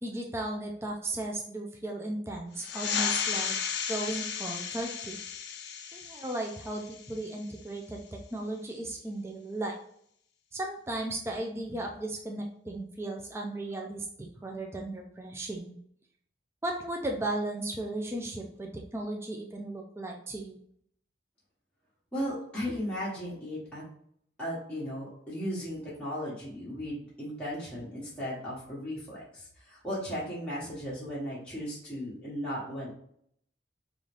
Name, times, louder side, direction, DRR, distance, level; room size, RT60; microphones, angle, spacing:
voice 1, 0.0-3.6 3.9-5.2 5.9-9.8 10.5-14.1 14.4-15.7 16.6-20.6, right 1 dB, 15° right, 1 dB, 0.4 m, -35 dB
sound 1, 2.6-7.7, left 7 dB, 60° left, 0.4 m, -34 dB
voice 2, 22.1-23.8 24.4-32.9, equal, 5° left, -9 dB, 1.0 m, -36 dB
3.8 x 2.5 x 3.3 m, 0.67 s
head